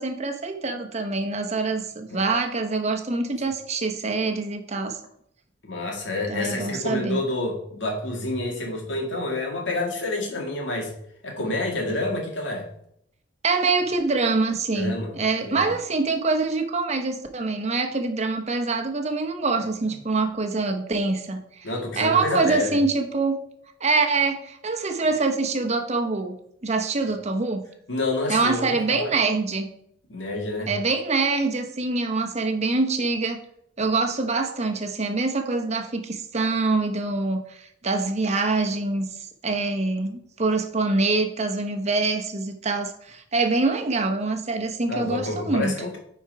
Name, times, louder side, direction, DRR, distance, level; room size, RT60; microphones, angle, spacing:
voice 1, 0.0-5.0 6.3-7.2 13.4-21.4 22.0-23.3 23.8-26.3 26.6-27.6 28.3-29.7 30.7-33.4 33.8-39.1 39.4-45.7, right 3 dB, 35° right, 4 dB, 0.9 m, -25 dB
voice 2, 5.6-10.9 11.2-12.7 14.7-15.2 15.4-15.7 21.6-22.8 27.9-29.1 30.1-30.7 44.9-46.0, left 2 dB, 80° left, 0 dB, 2.2 m, -28 dB
9.7 x 4.5 x 4.7 m, 0.72 s
head